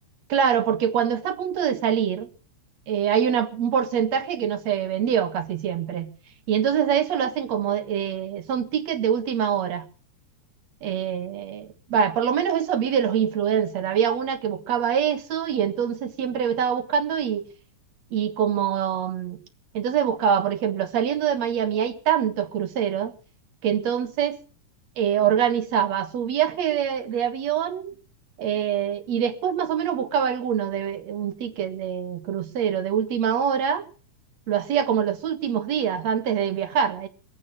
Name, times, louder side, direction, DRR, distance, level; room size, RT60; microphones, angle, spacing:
voice 1, 0.3-2.3 2.9-6.1 6.5-9.9 10.8-17.4 18.1-19.4 19.7-23.2 23.6-24.4 25.0-27.9 28.4-33.9 34.5-37.1, right 8 dB, 60° right, 2.5 m, -24 dB
21.0 x 8.6 x 7.6 m
omnidirectional pair, 3.8 m